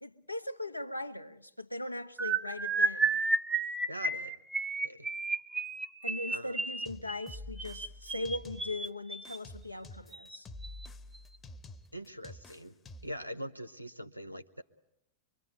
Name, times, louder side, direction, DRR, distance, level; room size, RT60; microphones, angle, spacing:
voice 1, 0.0-3.2 6.0-10.5, left 2 dB, 85° left, 1.0 m, -39 dB
sound 1, 2.2-9.4 10.1-10.4 10.6-10.9 11.1-11.4, right 3 dB, 10° right, 1.0 m, -32 dB
voice 2, 3.9-4.4 4.8-5.1 6.3-6.6 11.9-12.8 13.0-14.6, equal, 90° right, 1.1 m, -42 dB
sound 2, 6.9-8.9 9.3-13.2, left 2 dB, 20° left, 1.0 m, -48 dB
24.0 x 24.0 x 9.1 m
figure-of-eight pair, 90°, 0 cm